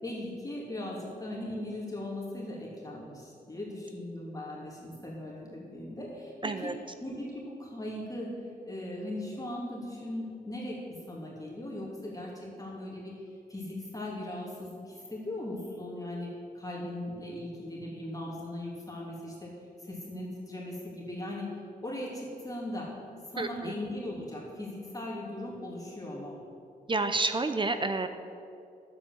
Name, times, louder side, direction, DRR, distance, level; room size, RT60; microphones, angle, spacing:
voice 1, 0.0-6.7 7.0-8.3 8.6-10.8 11.1-13.2 13.5-16.3 16.5-19.5 19.8-21.5 21.8-22.9 23.3-26.4, left 1 dB, 20° left, -5 dB, 2.9 m, -38 dB
voice 2, 6.4-6.7 23.4-23.7 26.9-28.1, right 3 dB, 30° right, 9 dB, 0.6 m, -29 dB
10.5 x 7.8 x 7.8 m, 2.6 s
wide cardioid pair, 95°, 16 cm